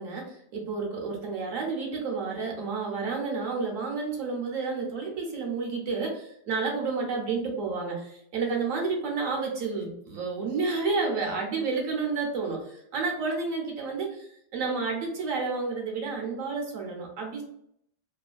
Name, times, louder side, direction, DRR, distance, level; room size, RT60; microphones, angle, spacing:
voice 1, 0.0-17.4, right 4 dB, 70° right, 0 dB, 1.1 m, -30 dB
3.1 x 2.2 x 2.4 m, 0.71 s
omnidirectional pair, 1.5 m